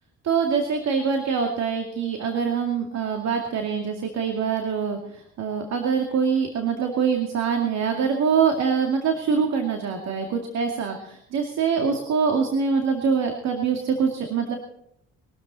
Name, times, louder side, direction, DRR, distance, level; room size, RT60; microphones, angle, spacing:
voice 1, 0.2-14.6, right 6 dB, 65° right, 3 dB, 2.4 m, -24 dB
22.0 x 13.0 x 4.2 m, 0.74 s
cardioid pair, 80°, 29 cm